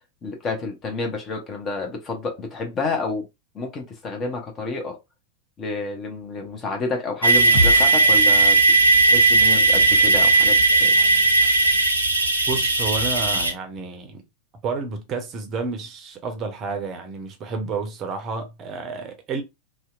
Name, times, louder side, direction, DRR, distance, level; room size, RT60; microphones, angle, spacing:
voice 1, 0.2-3.3 3.5-5.0 5.6-8.6 9.0-10.9, left 3 dB, 25° left, 0.7 m, -29 dB
sound 1, 7.2-13.5, right 3 dB, 85° right, 0.5 m, -17 dB
sound 2, 7.4-12.0, equal, 75° left, 1.1 m, -32 dB
voice 2, 12.5-14.2 14.6-19.4, right 4 dB, 30° right, 0.6 m, -30 dB
2.7 x 2.1 x 2.4 m
figure-of-eight pair, 90°, 0 cm